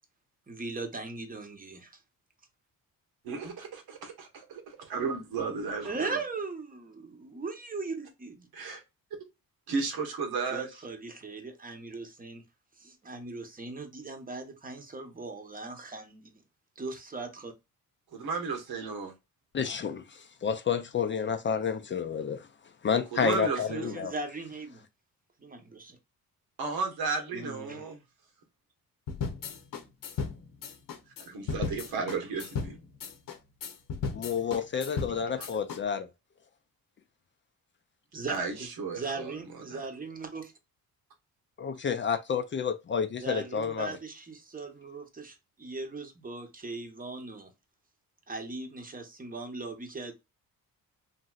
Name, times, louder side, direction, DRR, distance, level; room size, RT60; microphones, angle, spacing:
voice 1, 0.5-2.0 5.8-8.5 10.4-12.4 12.8-16.3 16.8-17.5 23.5-24.8 25.4-26.0 27.3-27.8 38.1-38.7 38.9-40.5 43.2-47.5 48.3-50.1, right 3 dB, 25° right, 0.8 m, -39 dB
voice 2, 3.2-6.2 8.5-8.8 9.7-10.7 18.1-19.1 23.1-24.0 26.6-28.0 31.3-32.8 35.4-35.5 38.3-39.3 39.7-39.8, right 4 dB, 75° right, 1.2 m, -34 dB
voice 3, 19.5-22.5 22.8-24.1 34.1-36.1 41.6-44.0, left 6 dB, 35° left, 0.4 m, -30 dB
sound 1, 29.1-35.8, left 5 dB, 60° left, 0.7 m, -36 dB
3.0 x 2.7 x 2.3 m
cardioid pair, 105°, 37 cm